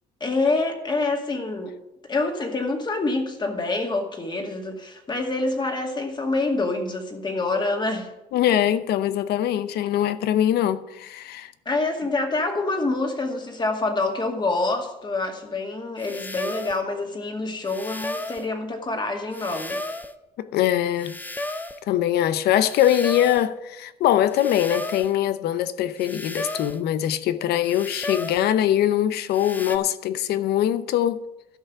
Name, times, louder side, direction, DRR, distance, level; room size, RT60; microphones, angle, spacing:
voice 1, 0.2-1.7 2.1-8.1 11.7-19.8, left 3 dB, 25° left, 2.2 m, -26 dB
voice 2, 8.3-11.5 20.4-21.2 21.9-31.2, left 11 dB, 75° left, 0.8 m, -22 dB
sound 1, 16.0-16.8 17.7-18.5 19.3-20.2 21.0-21.8 22.7-23.5 24.3-25.1 26.0-26.8 27.7-28.5 29.3-29.8, left 1 dB, 10° left, 0.8 m, -33 dB
12.5 x 5.6 x 8.3 m
cardioid pair, 110°, 17 cm